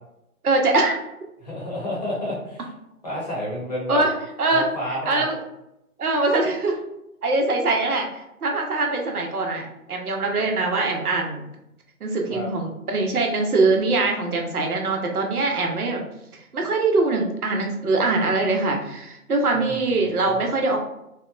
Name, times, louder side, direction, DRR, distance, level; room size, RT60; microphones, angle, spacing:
voice 1, 0.4-0.9 3.9-4.1 4.4-4.7 5.1-5.4 6.0-6.8 7.2-11.5 12.0-16.0 16.3-20.8, right 3 dB, 80° right, 2 dB, 0.8 m, -23 dB
voice 2, 1.4-2.7 3.0-4.0 4.5-5.2 12.3-12.5 19.5-19.8, left 1 dB, 30° left, -6 dB, 0.7 m, -30 dB
2.8 x 2.1 x 2.4 m, 0.85 s
figure-of-eight pair, 150°, 44 cm